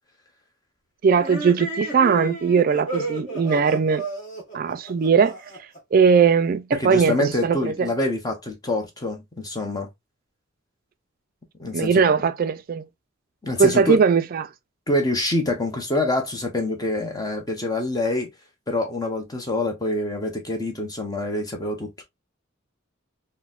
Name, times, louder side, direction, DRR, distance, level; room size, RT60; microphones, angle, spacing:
voice 1, 1.0-4.0 4.5-5.4 5.9-7.9 11.7-12.8 13.6-14.5, right 5 dB, 45° right, 0.3 m, -19 dB
sound 1, 1.2-5.8, right 3 dB, 40° left, 1.3 m, -32 dB
voice 2, 6.8-9.9 11.6-12.0 13.4-14.0 14.9-18.3 18.7-22.0, left 2 dB, 20° left, 0.8 m, -26 dB
3.9 x 2.1 x 2.4 m
head